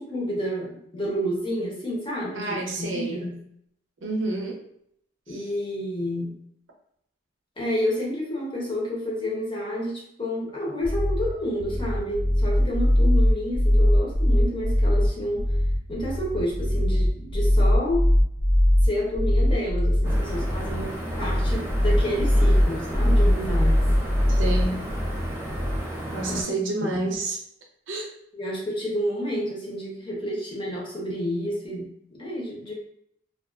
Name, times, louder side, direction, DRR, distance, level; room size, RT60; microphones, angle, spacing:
voice 1, 0.0-3.4 5.3-6.4 7.6-15.5 15.9-18.0 18.8-23.8 26.3-26.5 26.8-27.0 28.3-32.7, equal, 25° left, -4 dB, 0.7 m, -30 dB
voice 2, 2.4-3.3 4.0-4.6 5.3-5.5 24.4-24.8 26.1-27.4 27.9-28.1, right 2 dB, 85° right, 1 dB, 0.5 m, -29 dB
sound 1, 10.8-25.8, equal, 65° left, 0.7 m, -21 dB
sound 2, 20.0-26.4, right 1 dB, 15° right, 0.4 m, -34 dB
2.3 x 2.2 x 2.3 m, 0.71 s
head